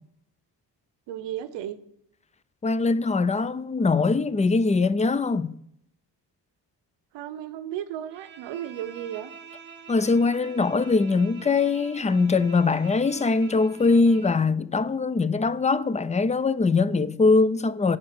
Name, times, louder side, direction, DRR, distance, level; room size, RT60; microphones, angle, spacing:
voice 1, 1.1-1.8 7.1-9.3, right 11 dB, 80° right, 0.7 m, -34 dB
voice 2, 2.6-5.5 9.9-18.0, left 4 dB, 15° left, 0.5 m, -22 dB
Bowed string instrument, 8.1-14.5, right 6 dB, 25° right, 1.2 m, -46 dB
7.9 x 5.7 x 6.5 m
supercardioid pair, 60°, 43 cm